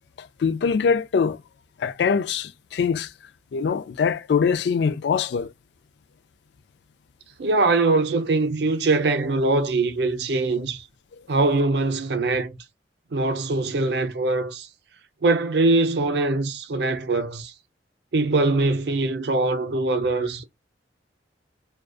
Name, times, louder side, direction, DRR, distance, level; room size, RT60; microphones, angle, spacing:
voice 1, 0.2-1.4 1.8-3.1 3.5-5.5, left 6 dB, 70° left, 0.3 m, -23 dB
voice 2, 7.4-10.8 11.3-12.6 13.1-14.7 15.2-17.5 18.1-20.4, right 3 dB, 65° right, 0.5 m, -22 dB
2.4 x 2.2 x 2.3 m
head